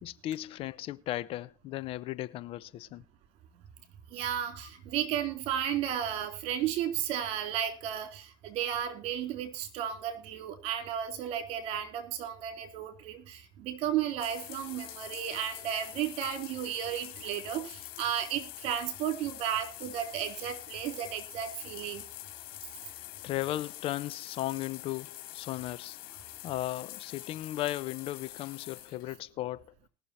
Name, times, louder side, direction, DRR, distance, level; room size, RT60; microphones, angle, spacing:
voice 1, 0.0-3.0 4.5-4.7 7.2-7.3 23.0-26.0 26.4-29.7, left 15 dB, 50° left, 0.7 m, -36 dB
voice 2, 4.1-22.0, right 10 dB, 60° right, 3.1 m, -33 dB
sound 1, 14.2-29.1, left 15 dB, 75° left, 2.6 m, -45 dB
19.5 x 6.8 x 4.3 m
supercardioid pair, 100°, 12 cm